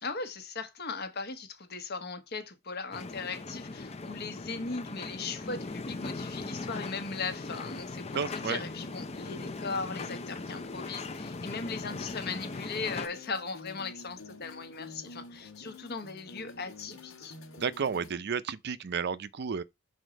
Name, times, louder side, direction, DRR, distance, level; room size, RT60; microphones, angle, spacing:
voice 1, 0.0-17.3, left 4 dB, 55° left, 1.2 m, -38 dB
sound 1, 2.9-13.1, left 3 dB, 30° left, 0.6 m, -39 dB
sound 2, 7.3-18.1, left 3 dB, 80° left, 1.5 m, -49 dB
voice 2, 8.1-8.6 17.6-19.6, right 6 dB, 55° right, 0.5 m, -32 dB
6.4 x 4.3 x 5.1 m
head